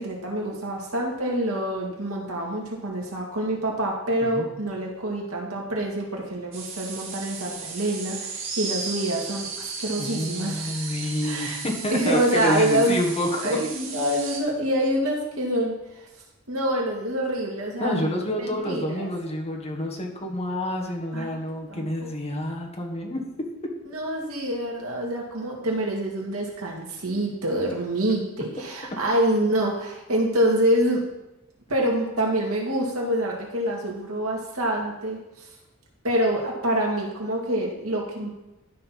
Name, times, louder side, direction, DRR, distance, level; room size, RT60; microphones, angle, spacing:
voice 1, 0.0-10.9 11.2-11.6 11.9-13.0 13.4-16.0 16.5-19.1 21.1-21.3 21.7-22.1 23.9-31.0 31.7-35.5 36.0-38.3, right 1 dB, 85° right, -1 dB, 2.3 m, -26 dB
sound 1, 6.5-14.4, right 5 dB, 65° right, 2.2 m, -35 dB
voice 2, 10.0-13.6 17.8-23.5, left 1 dB, 30° left, 0 dB, 1.6 m, -28 dB
12.0 x 4.5 x 5.8 m, 0.96 s
head